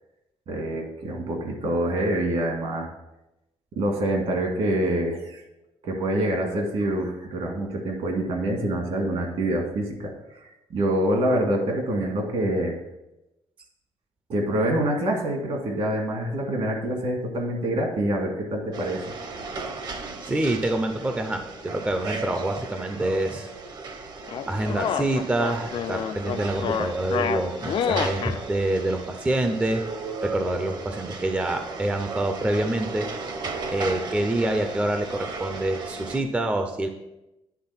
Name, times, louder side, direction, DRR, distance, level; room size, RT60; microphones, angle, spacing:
voice 1, 0.5-2.9 3.8-5.4 5.8-10.5 10.7-12.8 14.3-19.0, right 1 dB, 65° right, 2 dB, 1.9 m, -26 dB
sound 1, 18.7-36.2, right 3 dB, 40° right, 0.8 m, -36 dB
voice 2, 20.2-23.5 24.5-29.8 30.2-33.1 33.7-36.9, right 1 dB, 10° right, 6 dB, 0.5 m, -26 dB
sound 2, 24.3-28.4, left 8 dB, 50° left, 0.4 m, -28 dB
9.5 x 3.7 x 5.7 m, 0.93 s
cardioid pair, 160°, 11 cm